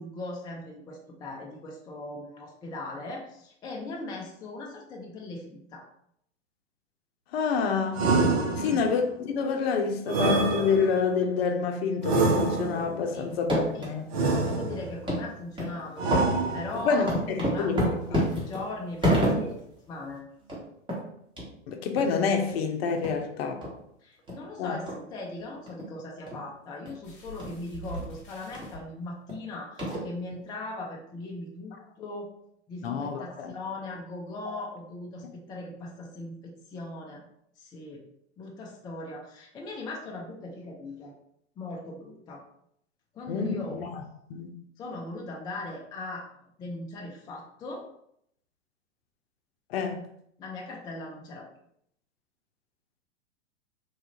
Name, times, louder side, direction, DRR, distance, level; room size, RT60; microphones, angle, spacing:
voice 1, 0.0-5.9 8.5-8.8 13.1-13.3 13.7-13.9 14.4-17.1 17.4-20.2 24.0-32.3 32.7-37.2 37.6-38.1 38.4-41.2 41.6-42.5 43.1-43.8 44.8-46.3 46.6-47.8 50.4-51.5, left 2 dB, 10° left, 0.4 m, -39 dB
voice 2, 7.3-8.1 8.6-14.1 16.8-17.8 18.1-18.2 21.7-23.6 24.6-24.8 32.8-33.5 43.3-43.9 44.3-44.5 49.7-50.0, left 5 dB, 55° left, 0.6 m, -28 dB
sound 1, 7.9-9.0 10.1-11.1 12.0-13.0 14.1-15.0 16.0-16.9, right 3 dB, 60° right, 0.7 m, -26 dB
sound 2, 13.3-13.9 14.4-14.5 15.1-15.2 15.6-15.7 16.1-19.7 20.1-20.2 20.4-20.6 20.9-21.0 21.4-21.5 22.0-22.1 22.5-22.6 23.0-23.2 23.6-23.7 24.3-24.4 24.9-25.0 25.7-25.9 26.3-26.4 26.9-27.0 27.4-27.5 27.9-28.0 28.5-28.7 29.3-29.4 29.8-30.3, equal, 15° right, 1.1 m, -28 dB
sound 3, 27.0-28.8 29.7-29.8 30.3-30.4, right 1 dB, 30° left, 1.0 m, -43 dB
3.1 x 2.4 x 2.8 m
hypercardioid pair, 100°, 36 cm